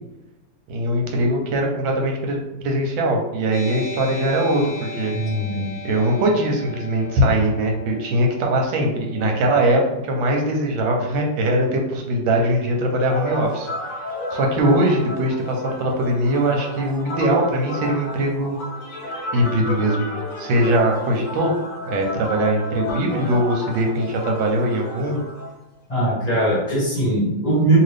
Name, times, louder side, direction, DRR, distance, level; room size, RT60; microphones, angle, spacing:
voice 1, 0.7-5.1 5.8-13.7 14.3-18.6 19.3-20.1 20.4-21.5 21.9-25.2, right 1 dB, 85° right, 1 dB, 1.4 m, -21 dB
sound 1, 3.5-10.6, left 4 dB, 85° left, 0.4 m, -39 dB
voice 2, 5.1-5.7 25.9-27.8, right 1 dB, 30° left, -7 dB, 0.7 m, -20 dB
sound 2, 13.0-25.5, left 1 dB, 60° left, 0.9 m, -32 dB
2.9 x 2.7 x 3.2 m, 0.95 s
omnidirectional pair, 2.1 m